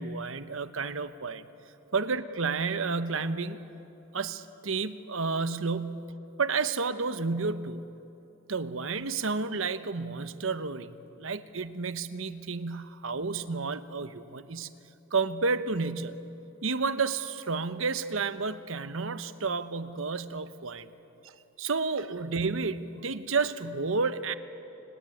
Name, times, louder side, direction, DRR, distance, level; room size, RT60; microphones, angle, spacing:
voice 1, 0.0-1.4 1.9-3.6 4.1-6.1 6.4-7.8 8.5-14.7 15.1-16.3 16.6-20.9 21.2-21.3 21.6-24.3, right 4 dB, 70° right, 12 dB, 1.0 m, -31 dB
29.0 x 19.0 x 9.1 m, 2.9 s
head